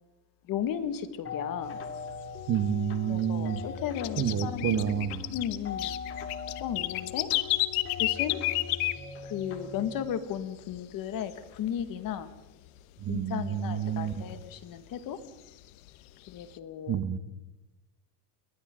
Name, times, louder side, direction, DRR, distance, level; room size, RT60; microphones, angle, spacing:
voice 1, 0.5-1.8 3.1-4.9 5.3-6.0 6.6-7.3 8.0-8.4 9.2-12.3 13.1-15.2 16.3-17.0, left 9 dB, 45° left, 10 dB, 1.9 m, -35 dB
sound 1, 1.2-10.0, left 6 dB, 30° left, 2.5 m, -40 dB
sound 2, 1.7-3.2 3.5-9.6 9.9-10.0 10.3-10.8 11.1-12.3 12.6-12.7 13.1-13.2 13.6-14.8 15.2-16.6, left 18 dB, 75° left, 1.2 m, -32 dB
voice 2, 2.5-3.6 4.2-5.2 13.0-14.2 16.9-17.2, right 9 dB, 35° right, 12 dB, 1.3 m, -29 dB
30.0 x 22.5 x 3.8 m, 0.98 s
supercardioid pair, 130°, 45 cm